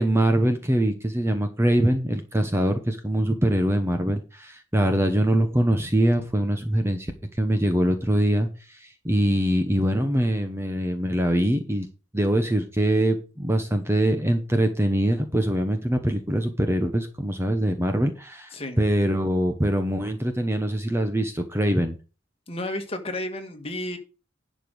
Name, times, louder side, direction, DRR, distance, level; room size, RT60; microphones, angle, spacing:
voice 1, 0.0-7.1 7.4-11.9 12.1-22.0, right 1 dB, 15° right, 6 dB, 1.1 m, -23 dB
voice 2, 22.5-24.0, left 1 dB, 30° left, 5 dB, 1.8 m, -32 dB
11.0 x 5.2 x 6.4 m, 0.32 s
head